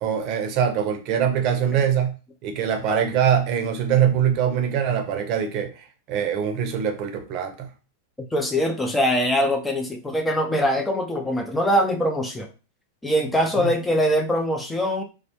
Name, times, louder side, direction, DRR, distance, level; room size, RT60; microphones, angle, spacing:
voice 1, 0.0-2.2 2.4-7.7 13.3-13.7, right 8 dB, 45° right, 5 dB, 0.5 m, -23 dB
voice 2, 8.3-12.5 13.0-15.0, equal, 10° left, 3 dB, 0.3 m, -22 dB
2.3 x 2.1 x 2.8 m, 0.33 s
hypercardioid pair, 125°, 0 cm